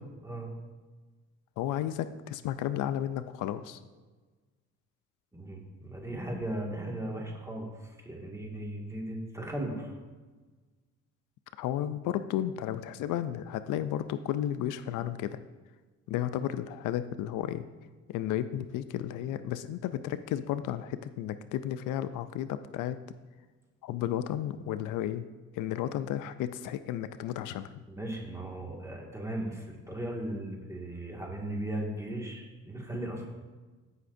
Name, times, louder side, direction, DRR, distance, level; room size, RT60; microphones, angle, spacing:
voice 1, 1.6-3.8 11.6-15.4 16.1-17.7 18.1-23.0 23.8-25.3 25.5-27.8, left 11 dB, 90° left, 12 dB, 0.5 m, -33 dB
voice 2, 5.3-10.0 27.9-33.3, right 1 dB, 10° right, -1 dB, 1.9 m, -37 dB
16.0 x 5.9 x 2.6 m, 1.3 s
cardioid pair, 90°, 30 cm